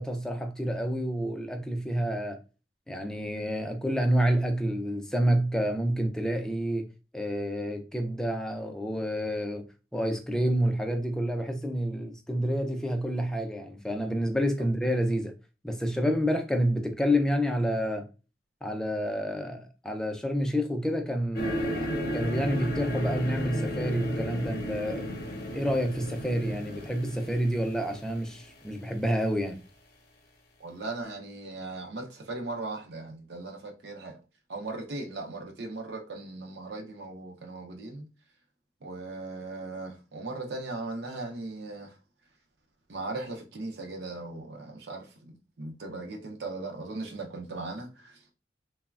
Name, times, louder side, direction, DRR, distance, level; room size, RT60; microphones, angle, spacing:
voice 1, 0.0-2.4 2.9-6.9 7.1-9.7 9.9-15.3 15.6-18.1 18.6-25.1 25.5-29.6, equal, 5° left, 0.3 m, -29 dB
sound 1, 21.3-28.7, equal, 55° left, 0.6 m, -33 dB
voice 2, 30.6-34.2 34.5-38.1 38.8-41.9 42.9-48.2, right 2 dB, 65° right, 0.5 m, -38 dB
3.1 x 2.0 x 2.3 m
head